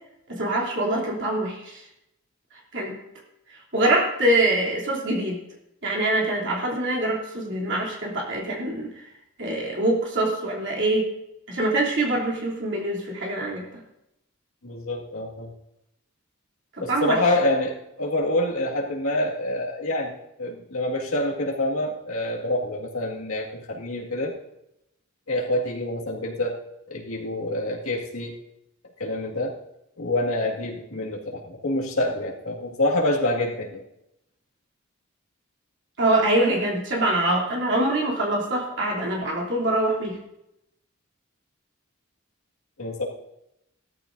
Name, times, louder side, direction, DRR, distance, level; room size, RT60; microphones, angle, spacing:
voice 1, 0.3-1.8 2.7-3.0 3.7-5.4 5.8-8.9 9.4-11.1 11.5-13.6 16.8-17.2 36.0-40.2, right 1 dB, 55° right, -3 dB, 3.1 m, -24 dB
voice 2, 14.6-15.5 16.8-20.1 20.4-24.3 25.3-26.6 26.9-28.3 29.0-29.6 30.0-33.8 42.8-43.0, left 1 dB, 85° left, -2 dB, 2.1 m, -26 dB
16.5 x 13.5 x 2.7 m, 0.84 s
head